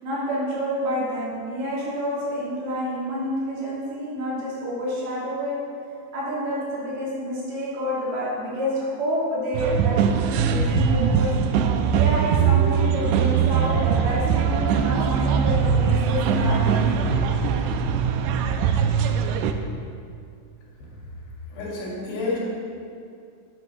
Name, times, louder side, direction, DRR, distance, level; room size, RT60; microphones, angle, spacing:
voice 1, 0.0-5.6 6.1-11.3 11.9-17.0, equal, 65° right, -7 dB, 4.8 m, -28 dB
sound 1, 9.5-19.5, right 7 dB, 85° right, 2.7 m, -21 dB
voice 2, 21.5-22.4, left 3 dB, 75° left, -4 dB, 4.5 m, -29 dB
10.0 x 9.4 x 5.9 m, 2.4 s
omnidirectional pair, 4.8 m